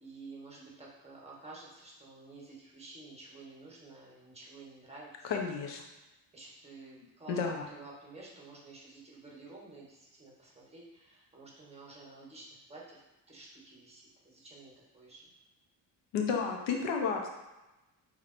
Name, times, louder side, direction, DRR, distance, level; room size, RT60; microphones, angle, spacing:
voice 1, 0.0-5.4 6.3-7.4 7.7-13.0 13.3-15.3, right 3 dB, 15° right, -4 dB, 1.1 m, -51 dB
voice 2, 5.2-5.8 7.3-7.6 16.1-17.3, left 5 dB, 90° left, 2 dB, 0.8 m, -32 dB
5.9 x 2.9 x 2.5 m, 1.0 s
cardioid pair, 120°, 41 cm